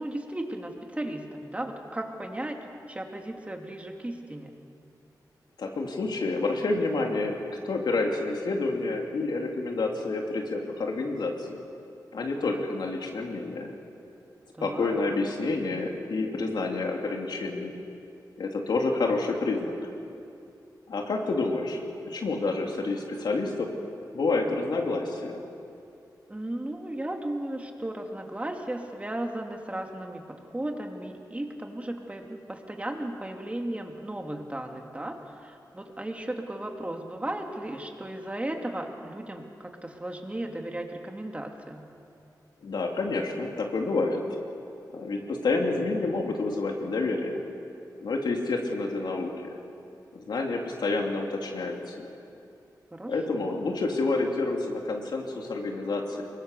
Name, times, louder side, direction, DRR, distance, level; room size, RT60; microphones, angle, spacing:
voice 1, 0.0-2.6 2.9-4.5 14.5-14.9 26.3-41.9 52.9-53.6, right 1 dB, 20° right, 3 dB, 2.4 m, -35 dB
voice 2, 5.6-7.4 7.6-11.6 12.1-13.7 14.6-17.7 18.4-19.7 20.9-21.8 22.1-23.7 24.1-25.4 42.6-44.2 44.9-47.4 48.0-49.6 50.1-52.1 53.1-56.2, left 3 dB, 80° left, 1 dB, 2.9 m, -29 dB
23.5 x 22.0 x 6.7 m, 2.5 s
wide cardioid pair, 85°, 7 cm